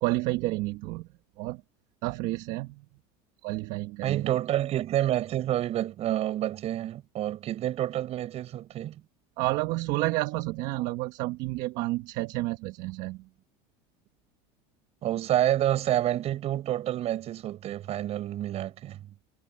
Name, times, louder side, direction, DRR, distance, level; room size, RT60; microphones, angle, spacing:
voice 1, 0.0-1.1 1.4-1.6 2.0-2.7 3.4-4.3 9.4-13.2, right 20 dB, 65° right, 1.5 m, -30 dB
voice 2, 4.0-9.0 15.0-19.0, right 12 dB, 50° right, 6.7 m, -28 dB
supercardioid pair, 110°, 14 cm